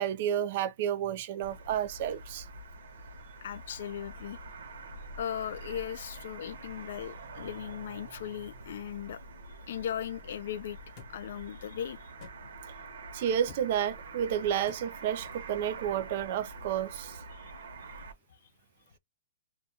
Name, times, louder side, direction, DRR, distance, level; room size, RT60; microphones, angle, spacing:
voice 1, 0.0-2.4 13.1-17.2, right 9 dB, 45° right, 0.4 m, -31 dB
sound 1, 1.4-18.1, right 3 dB, 80° right, 0.8 m, -46 dB
voice 2, 3.4-4.4 5.2-9.2 9.7-10.8 11.1-12.1 17.3-17.5, left 9 dB, 60° left, 0.3 m, -38 dB
sound 2, 11.0-11.1 12.2-12.4 13.5-13.6 14.7-14.8, left 6 dB, 30° left, 0.7 m, -48 dB
2.2 x 2.2 x 2.8 m
hypercardioid pair, 165°, 0 cm